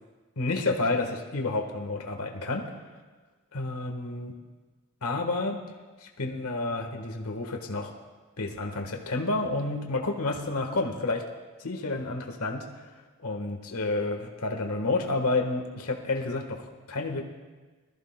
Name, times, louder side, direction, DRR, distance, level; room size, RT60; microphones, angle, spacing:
voice 1, 0.4-2.6 3.5-4.3 5.0-5.6 6.0-7.9 8.4-11.2 11.6-12.9 13.2-17.2, left 2 dB, 85° left, 3 dB, 1.3 m, -30 dB
23.0 x 14.0 x 2.2 m, 1.3 s
head